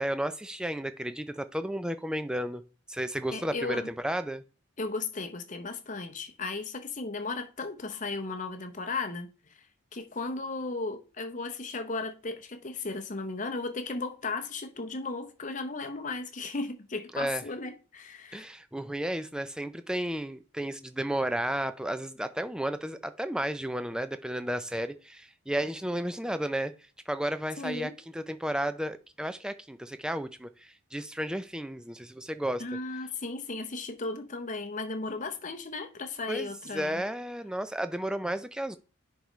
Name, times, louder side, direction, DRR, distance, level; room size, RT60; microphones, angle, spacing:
voice 1, 0.0-2.6 2.9-4.4 17.1-17.4 18.3-26.7 27.1-32.7 36.3-38.8, right 1 dB, 5° right, 0.4 m, -33 dB
voice 2, 3.3-3.9 4.8-9.7 9.9-18.5 27.6-28.0 32.6-37.0, left 3 dB, 35° left, 0.8 m, -35 dB
10.5 x 4.6 x 3.1 m
head